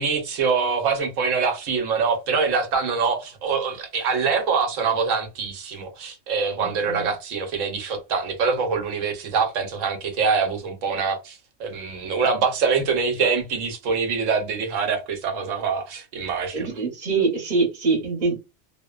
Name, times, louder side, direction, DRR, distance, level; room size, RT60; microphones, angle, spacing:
voice 1, 0.0-16.7, right 5 dB, 85° right, 1.1 m, -24 dB
voice 2, 6.6-7.1 16.5-18.4, right 4 dB, 40° right, 1.0 m, -24 dB
2.7 x 2.1 x 2.3 m
omnidirectional pair, 1.3 m